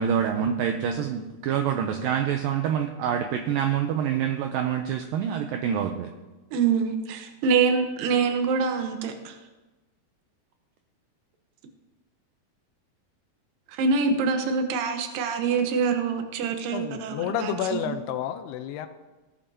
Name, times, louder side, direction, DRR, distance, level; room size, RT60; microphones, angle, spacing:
voice 1, 0.0-6.1, right 8 dB, 85° right, 5 dB, 2.0 m, -26 dB
voice 2, 6.5-9.4 13.7-17.9, right 5 dB, 70° right, 5 dB, 2.4 m, -25 dB
voice 3, 16.7-18.9, left 9 dB, 85° left, 9 dB, 2.6 m, -30 dB
17.0 x 8.9 x 2.8 m, 1.2 s
omnidirectional pair, 4.7 m